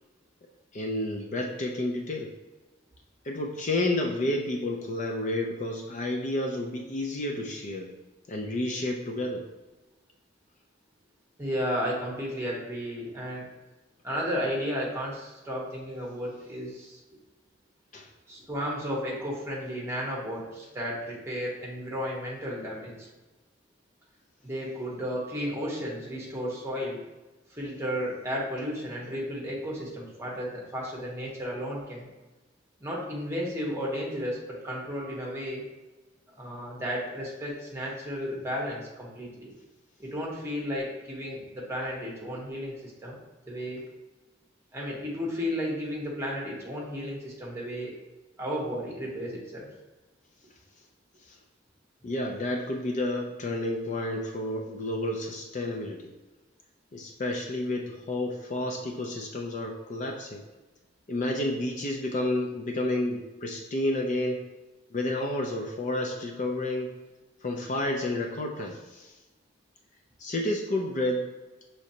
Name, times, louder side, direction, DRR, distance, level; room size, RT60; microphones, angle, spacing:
voice 1, 0.7-2.3 3.2-7.9 8.3-9.5 17.9-18.1 51.3-51.4 52.0-56.1 56.9-60.4 61.1-64.4 64.9-66.9 67.4-69.1 70.2-71.3, left 1 dB, 40° left, 2 dB, 0.4 m, -30 dB
voice 2, 11.4-13.5 14.0-17.0 18.3-23.1 24.4-27.0 27.5-32.1 32.8-35.7 36.4-39.5 40.0-43.2 43.5-43.8 44.7-48.0 48.4-49.7, equal, 15° right, -3 dB, 1.1 m, -33 dB
6.0 x 3.2 x 2.8 m, 1.2 s
head